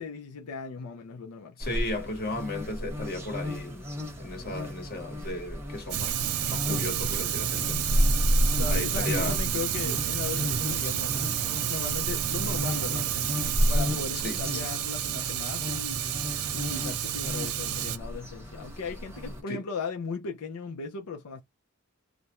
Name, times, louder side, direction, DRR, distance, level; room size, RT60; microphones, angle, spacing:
voice 1, 0.0-1.6 8.5-11.1 11.4-13.1 13.7-16.1 16.5-21.4, left 5 dB, 85° left, 0.5 m, -37 dB
voice 2, 1.6-3.8 4.1-6.2 6.5-8.0 8.7-9.4 14.2-14.4 19.5-19.6, left 2 dB, 45° left, 1.2 m, -35 dB
sound 1, 1.6-19.4, equal, 10° right, 0.8 m, -32 dB
Fire, 5.9-18.0, right 10 dB, 75° right, 0.4 m, -30 dB
2.4 x 2.1 x 2.9 m
head